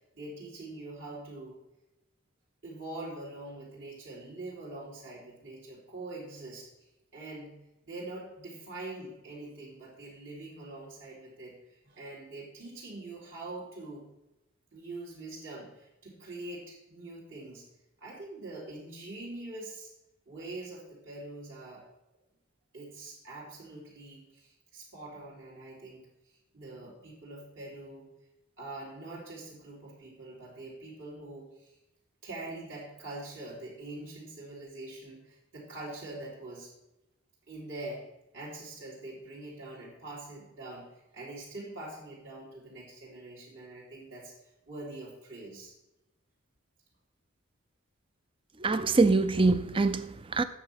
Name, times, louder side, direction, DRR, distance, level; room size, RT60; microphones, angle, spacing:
voice 1, 0.0-1.6 2.6-7.5 7.8-14.0 14.7-17.6 18.0-19.9 20.3-21.9 22.7-28.1 28.6-31.8 32.2-36.7 37.5-38.0 38.3-40.9 41.1-45.7, right 2 dB, 65° right, 3.4 m, -44 dB
voice 2, 48.6-50.4, right 3 dB, 25° right, 0.5 m, -24 dB
9.5 x 6.9 x 5.8 m
head